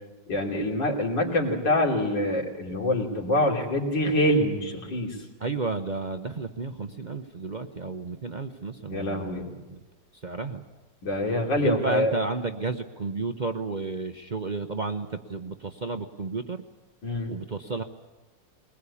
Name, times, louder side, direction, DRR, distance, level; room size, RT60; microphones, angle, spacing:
voice 1, 0.3-5.2 8.9-9.4 11.0-12.1 17.0-17.3, left 1 dB, 90° left, -1 dB, 3.8 m, -25 dB
voice 2, 5.4-9.8 10.2-10.6 11.6-16.6 17.3-17.8, right 3 dB, 50° right, 7 dB, 0.5 m, -32 dB
21.5 x 21.0 x 8.4 m, 1.2 s
omnidirectional pair, 1.9 m